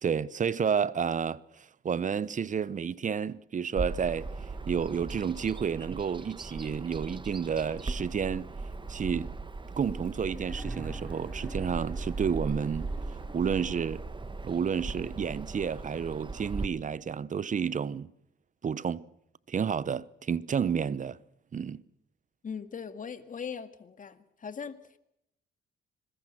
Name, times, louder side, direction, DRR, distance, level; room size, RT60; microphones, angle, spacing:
voice 1, 0.0-4.3 4.7-8.5 8.9-9.3 9.8-12.9 13.3-14.0 14.4-18.1 18.6-19.1 19.5-21.2 21.5-21.8, right 7 dB, 40° right, 0.9 m, -30 dB
Bird vocalization bird call bird song, 3.8-16.7, right 3 dB, 25° right, 1.6 m, -38 dB
sound 1, 10.3-14.1 15.3-15.4, equal, 5° left, 3.3 m, -48 dB
voice 2, 22.4-25.0, left 6 dB, 40° left, 2.2 m, -40 dB
26.5 x 21.5 x 6.1 m
cardioid pair, 90°, 20 cm